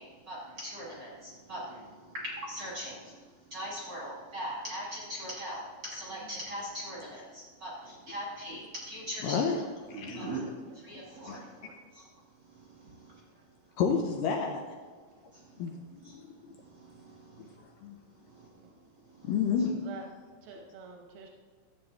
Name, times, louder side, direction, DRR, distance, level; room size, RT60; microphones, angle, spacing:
voice 1, 0.0-3.1 3.5-9.5 9.9-10.4 10.7-11.4 11.9-12.0 12.5-13.2 15.3-15.4 16.0-16.1 16.7-17.5 19.1-19.3, equal, 45° right, -4 dB, 1.4 m, -40 dB
voice 2, 9.2-9.6 9.9-10.4 11.3-11.4 13.8-14.6 15.6-16.4 17.8-18.0 19.2-19.8, left 6 dB, 80° left, 3 dB, 2.1 m, -30 dB
voice 3, 10.4-10.8 11.2-11.7 19.8-20.0 20.4-21.3, right 4 dB, 90° right, 2 dB, 2.9 m, -48 dB
13.0 x 7.8 x 3.5 m, 1.5 s
omnidirectional pair, 4.3 m